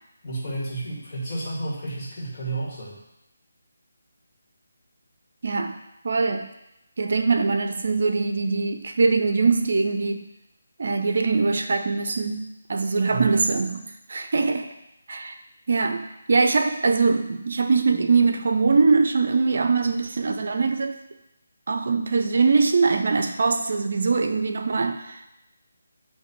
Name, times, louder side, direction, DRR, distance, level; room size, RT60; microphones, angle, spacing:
voice 1, 0.2-3.0 13.1-13.3, right 2 dB, 30° left, -6 dB, 2.1 m, -31 dB
voice 2, 5.4-5.8 6.0-6.5 7.0-10.2 10.8-14.7 15.1-15.4 15.7-21.0 21.7-25.3, right 4 dB, 60° right, 7 dB, 0.5 m, -22 dB
8.0 x 2.8 x 4.5 m, 0.88 s
figure-of-eight pair, 155°, 0 cm